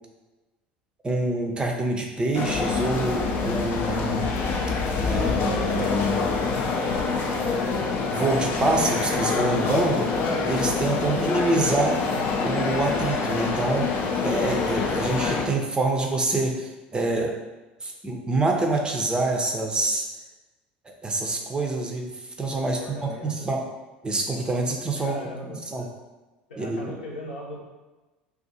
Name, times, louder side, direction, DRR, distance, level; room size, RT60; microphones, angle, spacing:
voice 1, 1.0-4.4 5.1-6.7 8.1-10.1 10.4-12.0 12.4-13.9 14.2-17.3 17.8-20.1 21.0-22.1 22.4-23.0 23.2-23.6 24.0-25.2 25.4-25.9 26.6-26.9, right 2 dB, 15° right, 1 dB, 0.5 m, -26 dB
sound 1, 2.3-15.5, left 4 dB, 45° left, 0.5 m, -26 dB
voice 2, 22.6-23.5 25.0-25.9 26.5-27.6, left 1 dB, 75° left, -4 dB, 0.9 m, -39 dB
2.5 x 2.4 x 4.0 m, 1.2 s
figure-of-eight pair, 70°, 5 cm